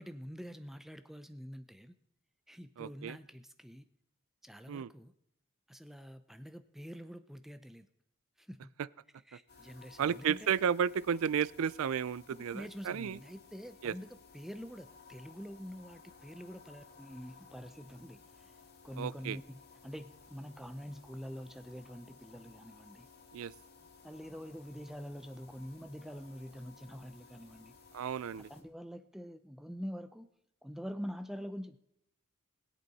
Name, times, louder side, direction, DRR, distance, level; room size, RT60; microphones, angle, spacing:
voice 1, 0.0-1.9 2.5-3.9 4.4-5.1 5.7-7.9 8.4-8.7 9.3-10.5 12.3-14.1 14.3-18.6 18.8-23.1 24.0-27.7 28.5-30.3 30.6-31.8, equal, ahead, 0.4 m, -46 dB
voice 2, 2.8-3.2 4.7-4.9 10.0-13.2 13.8-13.9 19.0-19.4 23.3-23.5 27.9-28.5, right 7 dB, 80° right, 0.4 m, -33 dB
sound 1, 9.5-28.6, left 5 dB, 50° left, 1.7 m, -58 dB
21.0 x 8.2 x 4.1 m
head